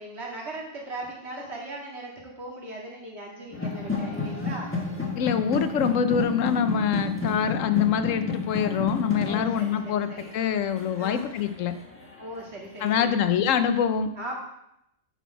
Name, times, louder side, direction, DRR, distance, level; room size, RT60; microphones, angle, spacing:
voice 1, 0.0-4.7 7.3-7.5 9.3-10.3 11.0-11.2 12.2-13.1 14.1-14.3, right 1 dB, 60° right, -3 dB, 2.2 m, -39 dB
sound 1, 3.5-12.4, left 3 dB, 10° left, 1.2 m, -31 dB
voice 2, 5.2-11.8 12.8-14.1, left 8 dB, 85° left, 10 dB, 1.0 m, -25 dB
8.2 x 5.9 x 4.6 m, 0.78 s
omnidirectional pair, 1.3 m